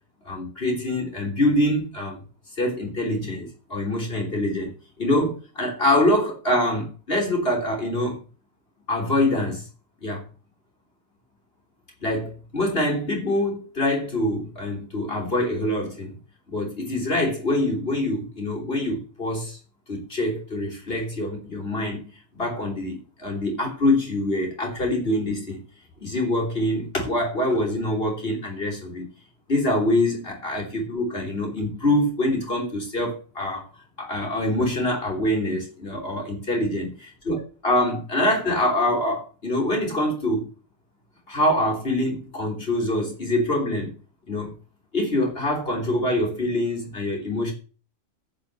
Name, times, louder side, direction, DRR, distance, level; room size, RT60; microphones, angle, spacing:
voice 1, 0.3-2.2 2.6-4.7 5.0-8.2 8.9-9.6 10.0-10.2 12.0-16.1 16.5-19.6 19.9-22.0 22.3-25.6 26.0-29.1 29.5-33.7 34.0-36.9 37.3-37.4 37.6-40.5 41.3-43.9 44.3-44.5 44.9-47.5, left 1 dB, 45° left, 0 dB, 3.5 m, -25 dB
10.5 x 5.3 x 7.4 m, 0.36 s
omnidirectional pair, 1.4 m